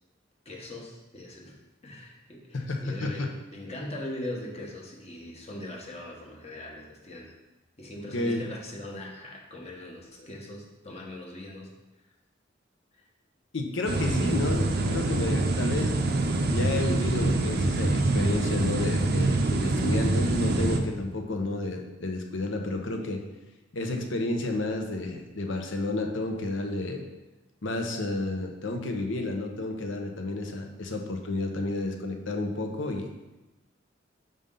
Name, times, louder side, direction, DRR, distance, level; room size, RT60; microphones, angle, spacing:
voice 1, 0.4-1.6 1.8-7.3 7.8-11.7 14.0-14.3, left 1 dB, 35° left, -1 dB, 1.1 m, -40 dB
voice 2, 2.5-3.3 8.1-8.4 13.5-15.9 16.5-23.2 23.7-27.0 27.6-33.1, left 2 dB, 70° left, 3 dB, 0.8 m, -31 dB
sound 1, 13.9-20.8, right 2 dB, 55° right, 0.6 m, -25 dB
5.4 x 5.3 x 3.7 m, 1.0 s
head